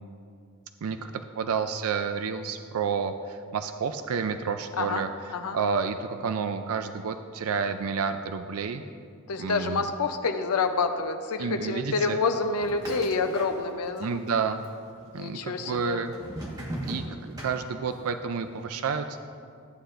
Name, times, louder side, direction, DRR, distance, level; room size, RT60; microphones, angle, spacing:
voice 1, 0.8-5.1 5.5-8.8 9.4-9.9 11.4-12.2 14.0-14.6 15.1-16.1 16.9-19.2, right 5 dB, 75° right, 8 dB, 0.4 m, -30 dB
voice 2, 9.3-14.2 15.1-16.0, left 4 dB, 90° left, 6 dB, 0.6 m, -28 dB
sound 1, 12.6-14.0 14.3-15.0 15.6-18.1, right 1 dB, 15° right, 1.4 m, -38 dB
14.0 x 9.6 x 2.5 m, 2.3 s
head